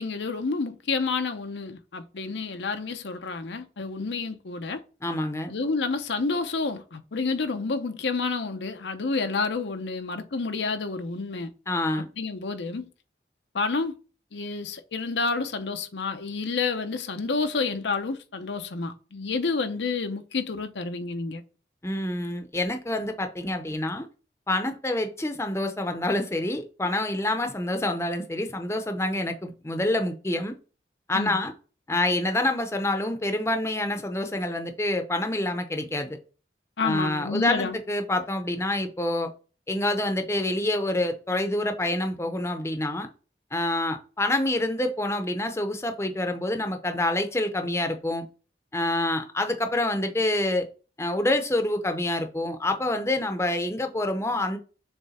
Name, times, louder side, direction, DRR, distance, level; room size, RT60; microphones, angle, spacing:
voice 1, 0.0-4.8 5.5-11.5 12.2-12.9 13.5-13.9 14.3-21.4 31.1-31.4 36.8-37.8, left 4 dB, 80° left, 0.7 m, -29 dB
voice 2, 5.0-5.5 11.7-12.1 21.8-24.1 24.5-30.5 31.1-31.5 31.9-36.2 36.8-39.3 39.7-43.1 43.5-48.2 48.7-50.7 51.0-54.6, left 1 dB, 15° left, 0.7 m, -27 dB
7.0 x 3.2 x 4.2 m
head